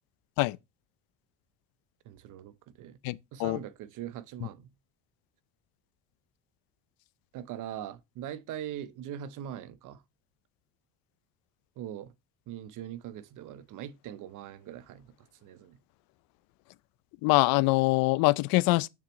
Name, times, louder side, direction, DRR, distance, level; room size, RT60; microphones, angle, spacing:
voice 1, 2.1-3.0 3.3-4.7 7.3-10.0 11.8-12.1 12.5-15.1 15.4-15.8, right 10 dB, 55° right, 0.8 m, -41 dB
voice 2, 3.0-3.6 17.2-18.9, left 21 dB, 70° left, 0.5 m, -24 dB
6.6 x 6.1 x 3.1 m
cardioid pair, 120°, 36 cm